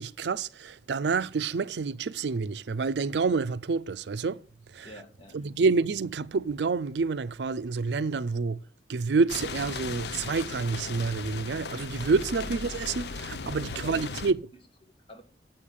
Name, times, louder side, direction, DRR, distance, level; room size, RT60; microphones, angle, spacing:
voice 1, 0.0-4.4 4.7-4.9 5.3-8.6 8.9-14.5, right 4 dB, 75° right, 0.5 m, -28 dB
voice 2, 4.8-5.4 13.7-15.2, equal, 30° left, 1.7 m, -49 dB
sound 1, 9.3-14.3, left 4 dB, 65° left, 0.6 m, -37 dB
7.8 x 6.6 x 7.2 m
head